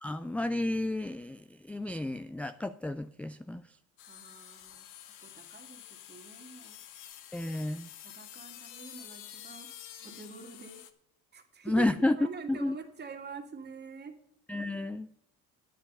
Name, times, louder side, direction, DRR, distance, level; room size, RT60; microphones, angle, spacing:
voice 1, 0.0-3.6 7.3-7.9 11.6-12.2 12.5-12.8 14.5-15.1, left 2 dB, 5° left, 12 dB, 0.4 m, -31 dB
sound 1, 4.0-10.9, left 11 dB, 75° left, 1.2 m, -49 dB
voice 2, 4.1-4.9 5.2-6.8 8.0-9.7 10.0-10.8 11.3-14.2, right 4 dB, 30° right, 5 dB, 2.1 m, -45 dB
10.0 x 10.0 x 5.5 m, 0.71 s
supercardioid pair, 90°, 32 cm